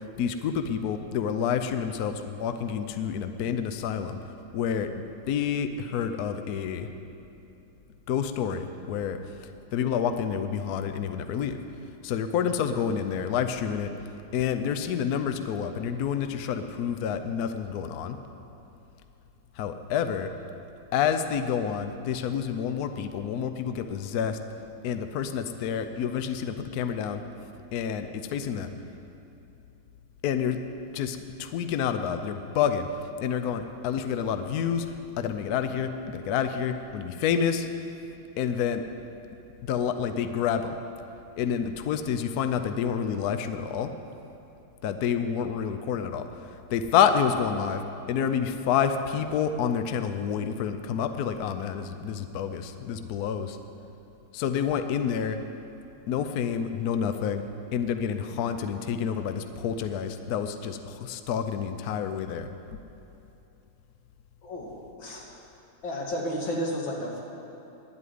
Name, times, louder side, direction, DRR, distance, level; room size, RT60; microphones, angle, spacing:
voice 1, 0.2-4.2 4.5-4.9 5.3-6.9 8.1-9.2 9.7-11.6 12.0-13.9 14.3-18.2 19.6-20.3 20.9-24.4 24.8-27.2 27.7-28.7 30.2-30.6 30.9-32.9 33.2-34.9 35.2-37.7 38.4-38.8 39.6-40.8 41.4-43.9 44.8-46.2 46.7-53.6 54.3-55.4 56.1-57.4 57.7-62.5, left 8 dB, 65° left, 8 dB, 1.0 m, -28 dB
voice 2, 64.4-65.3 65.8-67.2, equal, 85° left, -1 dB, 2.6 m, -32 dB
11.0 x 8.2 x 9.3 m, 2.9 s
omnidirectional pair, 2.0 m